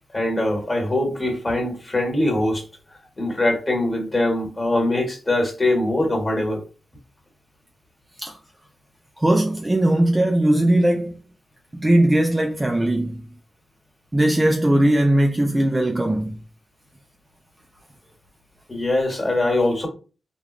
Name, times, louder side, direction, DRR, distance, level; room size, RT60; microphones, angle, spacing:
voice 1, 0.1-2.6 3.2-6.6 18.7-19.9, left 1 dB, 25° left, 1.3 m, -22 dB
voice 2, 9.2-11.2 11.7-13.2 14.1-16.4, right 1 dB, 15° right, 0.3 m, -19 dB
3.5 x 2.2 x 2.9 m
wide cardioid pair, 140°, 0 cm